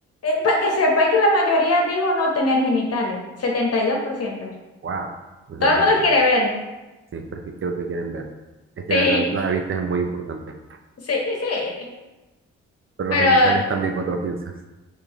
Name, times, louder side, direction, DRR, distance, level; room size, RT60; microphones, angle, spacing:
voice 1, 0.2-4.5 5.6-6.5 8.9-9.2 11.0-11.9 13.1-13.6, left 2 dB, 55° left, 0 dB, 1.2 m, -20 dB
voice 2, 5.5-6.0 7.1-8.3 8.8-10.4 10.7-10.8 13.0-14.5, right 5 dB, 45° right, 4 dB, 0.6 m, -27 dB
4.6 x 3.4 x 3.1 m, 1.1 s
supercardioid pair, 50°, 29 cm